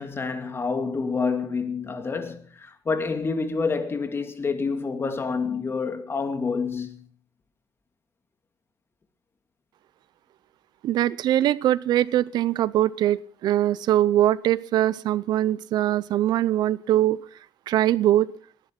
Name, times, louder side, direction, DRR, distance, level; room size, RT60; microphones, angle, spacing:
voice 1, 0.0-7.0, left 4 dB, 35° left, 2.5 m, -28 dB
voice 2, 10.8-17.2 17.7-18.3, right 13 dB, 80° right, 0.7 m, -22 dB
19.5 x 11.0 x 5.9 m
cardioid pair, 95°, 7 cm